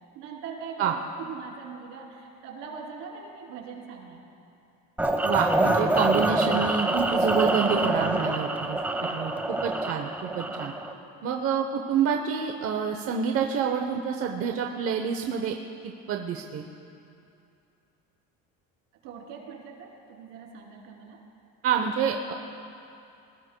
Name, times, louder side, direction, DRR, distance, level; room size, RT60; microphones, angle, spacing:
voice 1, 0.1-4.2 10.3-10.7 19.0-21.2, right 6 dB, 80° right, -1 dB, 3.3 m, -42 dB
sound 1, 5.0-10.9, right 2 dB, 5° right, 1.0 m, -26 dB
voice 2, 5.2-10.7 11.2-15.5 15.8-16.6 21.6-22.3, right 7 dB, 45° right, 3 dB, 0.9 m, -28 dB
24.0 x 19.5 x 2.3 m, 2.7 s
cardioid pair, 125°, 31 cm